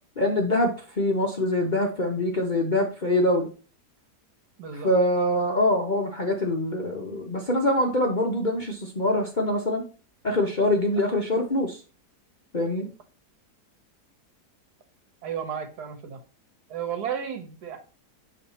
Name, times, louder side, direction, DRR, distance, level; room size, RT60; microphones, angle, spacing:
voice 1, 0.2-3.5 4.8-9.8 10.2-11.8 12.5-12.9, left 1 dB, 40° left, 0 dB, 0.7 m, -24 dB
voice 2, 4.6-4.9 15.2-16.2 16.7-17.8, right 8 dB, 70° right, 7 dB, 1.5 m, -33 dB
7.3 x 3.2 x 4.1 m, 0.35 s
omnidirectional pair, 1.8 m